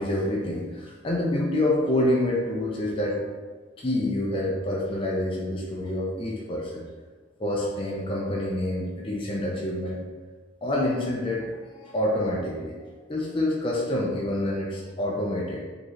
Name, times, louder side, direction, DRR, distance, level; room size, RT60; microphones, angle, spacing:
voice 1, 0.0-3.2 3.8-6.8 7.4-10.0 10.6-12.8 13.1-15.6, left 1 dB, 30° left, -3 dB, 0.5 m, -27 dB
4.6 x 2.8 x 3.1 m, 1.4 s
head